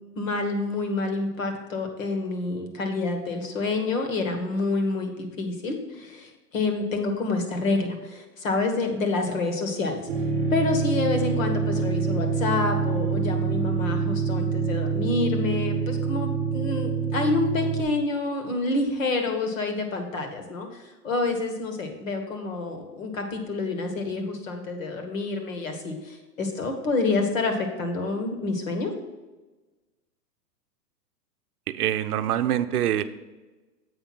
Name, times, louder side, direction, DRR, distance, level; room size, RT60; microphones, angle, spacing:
voice 1, 0.1-10.1 10.5-20.7 21.0-28.9, left 3 dB, 55° left, 4 dB, 1.6 m, -28 dB
sound 1, 10.1-17.8, right 5 dB, 5° right, 0.8 m, -26 dB
voice 2, 31.7-33.0, right 11 dB, 65° right, 10 dB, 0.7 m, -25 dB
8.1 x 5.2 x 5.9 m, 1.2 s
hypercardioid pair, 180°, 49 cm